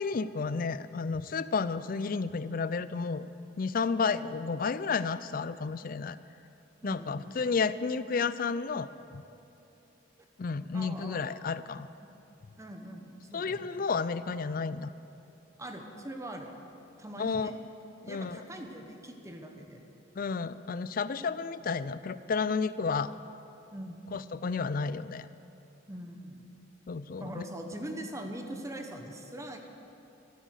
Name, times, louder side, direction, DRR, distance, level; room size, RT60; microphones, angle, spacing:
voice 1, 0.0-3.3 3.6-6.2 6.8-9.2 10.4-11.9 13.3-14.9 17.2-17.5 18.1-18.4 20.2-23.1 24.1-25.3 26.9-27.4, left 5 dB, 50° left, 15 dB, 0.4 m, -31 dB
voice 2, 6.8-7.2 10.7-11.3 12.0-12.1 12.6-13.8 15.6-16.5 16.9-17.6 18.0-19.8 23.7-24.0 25.9-26.4 27.2-29.6, right 1 dB, 15° right, 4 dB, 1.1 m, -42 dB
14.0 x 12.0 x 6.5 m, 2.8 s
head